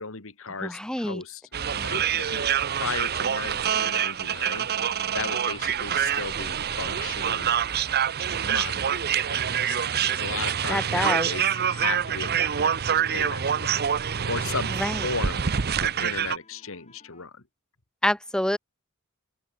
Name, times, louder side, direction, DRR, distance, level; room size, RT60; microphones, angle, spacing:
voice 1, 0.0-1.4 1.7-7.6 8.4-13.8 14.3-14.7 15.0-15.4 15.8-17.4, left 4 dB, 70° left, 2.2 m, -36 dB
voice 2, 0.6-1.2 10.7-11.3 14.7-15.0 18.0-18.6, left 1 dB, 5° left, 0.6 m, -27 dB
sound 1, 1.5-16.4, right 8 dB, 50° right, 0.7 m, -26 dB
sound 2, 1.8-7.8 8.3-17.3, left 3 dB, 30° left, 5.4 m, -55 dB
open air
head